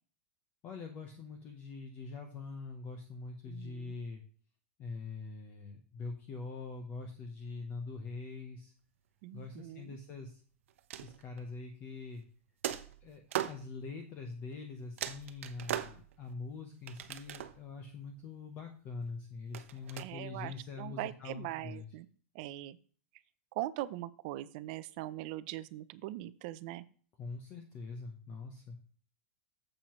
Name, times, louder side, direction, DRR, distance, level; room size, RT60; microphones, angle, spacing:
voice 1, 0.6-4.2 4.8-8.7 9.3-10.4 11.0-12.2 13.0-21.9 27.2-28.8, left 4 dB, 25° left, 5 dB, 0.8 m, -44 dB
voice 2, 3.5-3.9 9.2-10.0 20.0-22.1 22.3-22.8 23.5-26.8, right 15 dB, 40° right, 15 dB, 0.4 m, -41 dB
sound 1, 10.7-11.5 12.6-13.6 14.5-14.6 15.0-16.3 16.9-17.7 19.5-20.0, right 11 dB, 70° right, 0.8 m, -39 dB
9.2 x 7.5 x 3.1 m, 0.43 s
supercardioid pair, 170°, 7 cm